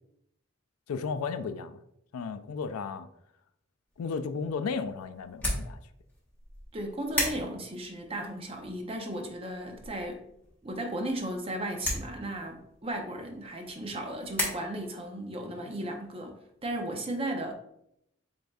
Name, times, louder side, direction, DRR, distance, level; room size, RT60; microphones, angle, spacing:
voice 1, 0.9-1.8 2.1-3.1 4.0-5.8, left 5 dB, 90° left, 12 dB, 0.4 m, -34 dB
sound 1, 3.9-14.5, left 1 dB, 10° left, 1.1 m, -38 dB
voice 2, 6.7-10.2 10.6-17.5, right 1 dB, 25° right, 3 dB, 0.6 m, -35 dB
7.8 x 2.6 x 2.3 m, 0.76 s
head